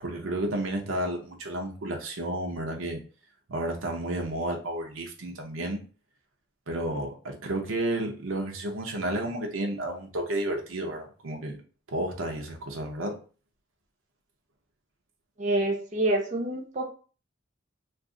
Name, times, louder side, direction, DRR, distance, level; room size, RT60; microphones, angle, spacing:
voice 1, 0.0-3.0 3.5-5.8 6.7-11.6 11.9-13.2, right 1 dB, 85° right, 2 dB, 0.7 m, -31 dB
voice 2, 15.4-16.9, right 1 dB, 35° right, 1 dB, 0.5 m, -27 dB
2.5 x 2.4 x 3.7 m, 0.38 s
head